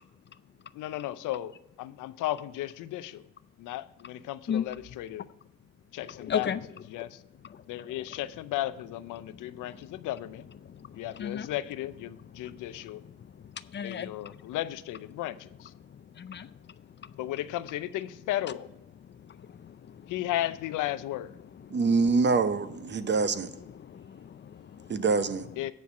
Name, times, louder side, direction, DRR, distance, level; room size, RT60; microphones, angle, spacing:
voice 1, 0.7-1.5 1.8-3.2 3.6-5.3 5.9-6.6 6.9-7.2 7.7-10.4 10.9-13.0 13.8-15.7 17.2-18.7 20.1-21.3 25.6-25.7, left 14 dB, 85° left, 14 dB, 0.6 m, -34 dB
voice 2, 6.0-6.6 7.5-7.9 9.6-10.1 10.6-11.5 12.4-12.8 13.1-13.2 13.4-14.5 16.2-16.5 19.2-20.1 21.6-21.8 22.9-23.1 23.7-25.0, left 8 dB, 35° left, 14 dB, 0.5 m, -37 dB
voice 3, 21.7-23.5 24.9-25.5, right 4 dB, 35° right, 12 dB, 0.7 m, -25 dB
9.6 x 4.5 x 7.0 m, 0.91 s
cardioid pair, 90°, 30 cm